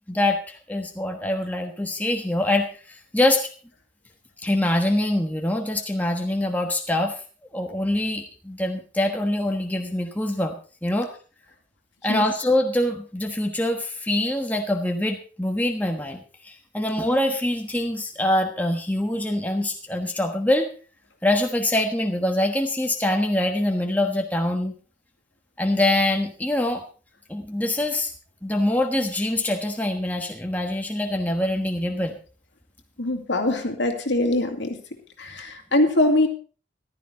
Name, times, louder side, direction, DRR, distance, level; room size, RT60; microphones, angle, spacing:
voice 1, 0.1-3.5 4.4-7.2 7.5-11.1 12.0-20.7 21.2-24.7 25.6-26.8 27.3-28.1 28.4-32.2, left 1 dB, 10° left, 3 dB, 1.2 m, -24 dB
voice 2, 33.0-34.8 35.2-36.3, left 1 dB, 65° left, 5 dB, 2.3 m, -22 dB
14.5 x 12.5 x 4.2 m, 0.37 s
head